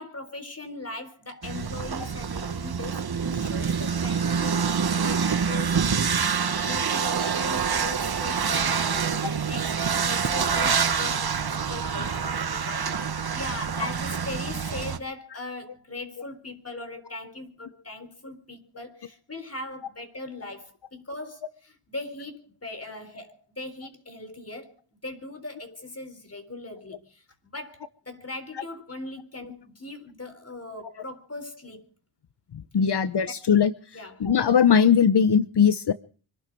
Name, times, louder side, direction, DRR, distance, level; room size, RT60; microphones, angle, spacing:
voice 1, 0.0-6.2 6.6-24.7 25.0-31.9 32.9-33.0 33.9-34.3, left 2 dB, 30° left, 11 dB, 4.0 m, -40 dB
sound 1, 1.4-15.0, right 6 dB, 50° right, 1.5 m, -26 dB
voice 2, 32.5-33.7 34.2-35.9, left 7 dB, 55° left, 13 dB, 1.0 m, -20 dB
25.0 x 12.0 x 4.8 m, 0.40 s
cardioid pair, 65°, 49 cm